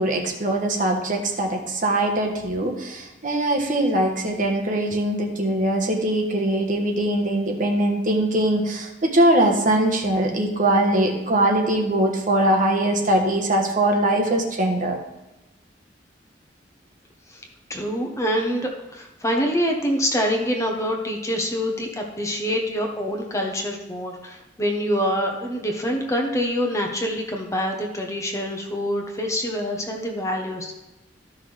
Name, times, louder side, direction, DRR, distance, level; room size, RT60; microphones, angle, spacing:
voice 1, 0.0-15.0, right 1 dB, 50° right, 1 dB, 1.3 m, -21 dB
voice 2, 17.7-30.7, equal, 20° left, 1 dB, 1.0 m, -25 dB
13.5 x 5.9 x 3.5 m, 0.98 s
head